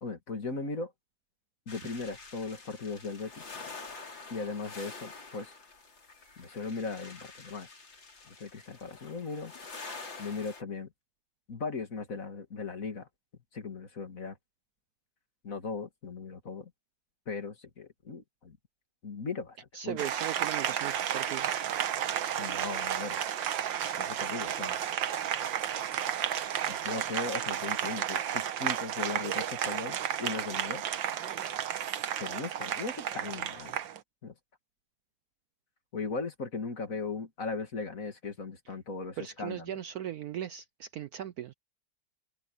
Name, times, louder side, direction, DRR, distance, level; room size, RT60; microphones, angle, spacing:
voice 1, 0.0-0.9 1.7-3.4 4.3-5.5 6.4-7.8 8.3-9.5 10.2-10.9 11.5-13.1 13.5-14.4 15.4-16.7 17.3-18.6 19.0-19.6 19.8-20.0 22.4-23.2 24.0-24.8 26.7-30.8 32.2-33.8 34.2-34.3 35.9-39.6, left 4 dB, 45° left, 2.6 m, -38 dB
sound 1, 1.7-10.6, left 4 dB, 80° left, 4.5 m, -47 dB
voice 2, 19.7-21.7 39.2-41.5, right 11 dB, 70° right, 0.9 m, -38 dB
Applause, 20.0-34.0, right 9 dB, 90° right, 1.8 m, -32 dB
omnidirectional pair, 2.0 m